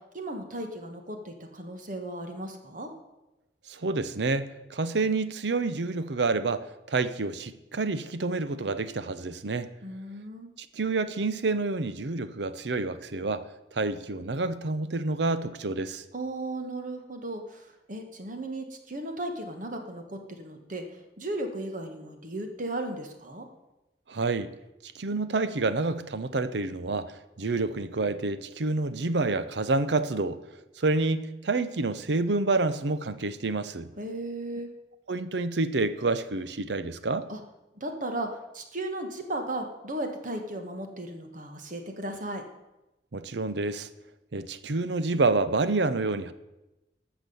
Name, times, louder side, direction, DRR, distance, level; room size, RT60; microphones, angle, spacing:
voice 1, 0.1-2.9 9.8-10.5 16.1-20.8 21.2-23.5 34.0-34.7 37.3-37.4 37.8-42.4, right 1 dB, 45° right, 5 dB, 1.6 m, -36 dB
voice 2, 3.7-9.7 10.6-13.4 13.7-16.0 24.1-24.5 24.9-30.4 30.8-33.9 35.1-37.3 43.1-43.9 44.3-46.3, right 3 dB, 75° right, 13 dB, 0.7 m, -28 dB
14.5 x 6.1 x 6.9 m, 0.98 s
head